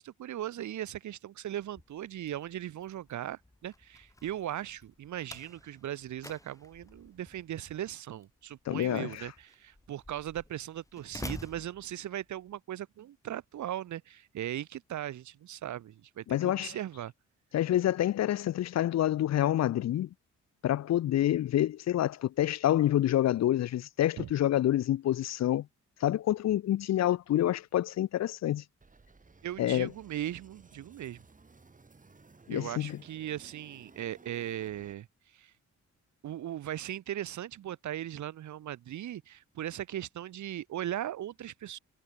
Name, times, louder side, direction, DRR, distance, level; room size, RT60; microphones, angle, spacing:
voice 1, 0.0-17.1 24.2-24.3 29.4-31.2 32.5-35.1 35.3-35.5 36.2-41.8, right 12 dB, 70° right, 0.9 m, -38 dB
Slam, 1.6-12.5, left 2 dB, 10° left, 2.2 m, -50 dB
voice 2, 8.7-9.2 16.3-16.7 17.5-20.1 20.6-25.7 26.0-28.6 29.6-29.9 32.5-33.0, left 12 dB, 60° left, 0.5 m, -27 dB
sound 1, 28.8-34.9, right 3 dB, 25° right, 6.1 m, -58 dB
cardioid pair, 120°, 30 cm